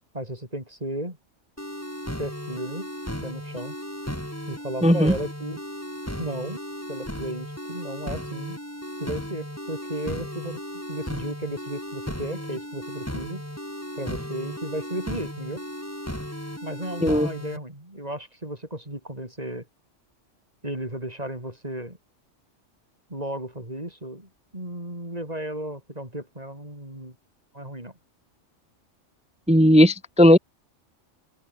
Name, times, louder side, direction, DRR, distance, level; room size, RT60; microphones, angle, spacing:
voice 1, 0.1-1.2 2.2-2.9 3.2-3.7 4.5-5.6 6.2-6.6 6.9-8.6 9.0-13.4 14.0-15.6 16.6-19.7 20.6-22.0 23.1-27.2 27.5-27.9, right 1 dB, 30° right, 6.2 m, -34 dB
sound 1, 1.6-17.6, equal, 10° left, 7.4 m, -35 dB
voice 2, 4.8-5.1 17.0-17.3 29.5-30.4, equal, 10° right, 0.4 m, -16 dB
omnidirectional pair, 1.3 m